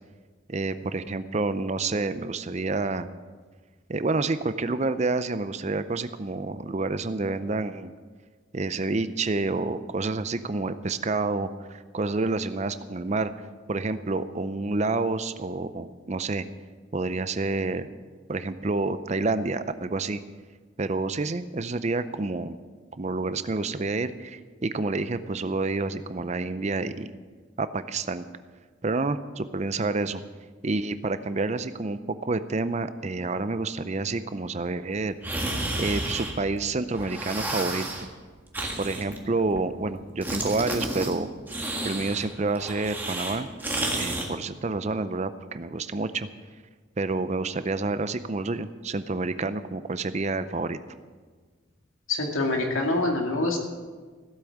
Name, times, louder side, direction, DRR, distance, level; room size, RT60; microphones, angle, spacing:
voice 1, 0.5-3.1 3.9-7.9 8.5-13.3 13.7-16.5 16.9-17.9 18.3-20.2 20.8-22.6 23.0-27.1 27.6-28.3 28.8-30.2 30.6-35.2 35.8-38.1 38.8-41.3 41.8-43.5 44.0-46.3 47.0-50.8, right 3 dB, 35° right, 12 dB, 0.5 m, -28 dB
sound 1, 35.2-36.6 36.9-38.1 38.5-39.9 40.2-41.1 41.5-44.3, right 1 dB, 10° right, 1.6 m, -31 dB
voice 2, 52.1-53.6, left 2 dB, 80° left, 1 dB, 2.3 m, -25 dB
15.5 x 8.3 x 7.2 m, 1.5 s
head